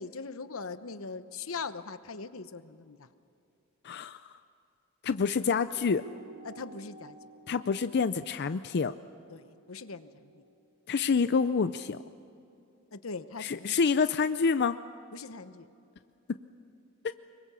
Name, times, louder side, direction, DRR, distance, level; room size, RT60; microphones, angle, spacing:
voice 1, 0.0-3.1 6.4-7.2 9.3-10.4 12.9-13.8 15.1-15.7, left 4 dB, 85° left, 12 dB, 1.0 m, -41 dB
voice 2, 3.8-4.4 5.0-6.0 7.5-8.9 10.9-12.0 13.4-14.8 17.0-17.1, left 5 dB, 55° left, 12 dB, 0.5 m, -27 dB
sound 1, 5.7-10.5, right 3 dB, 40° right, 6.8 m, -53 dB
25.5 x 23.0 x 6.9 m, 2.7 s
head